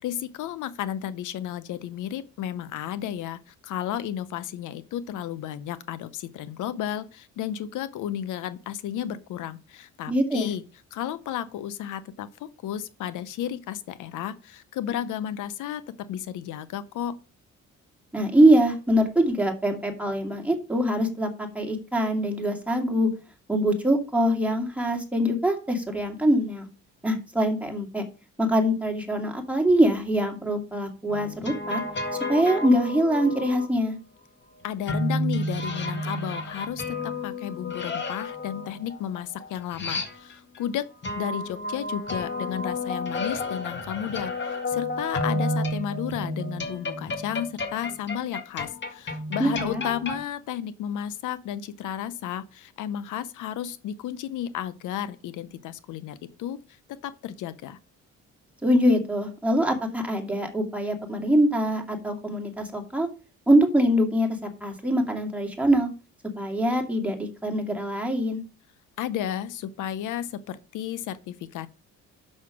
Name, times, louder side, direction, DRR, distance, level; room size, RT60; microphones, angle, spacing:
voice 1, 0.0-10.6 10.9-15.8 16.1-17.1 34.6-40.9 41.2-56.6 56.9-57.8 69.0-71.7, left 10 dB, 85° left, 0.7 m, -33 dB
voice 2, 10.1-10.5 18.1-23.1 23.5-26.7 27.0-28.0 28.4-31.8 32.3-33.9 49.4-49.8 58.6-63.1 63.5-64.3 64.6-65.9 66.4-68.4, equal, 5° right, 2.3 m, -23 dB
sound 1, 31.1-33.6 34.9-40.6 41.0-50.2, left 2 dB, 35° left, 1.9 m, -31 dB
6.5 x 6.0 x 5.9 m
cardioid pair, 90°, 30 cm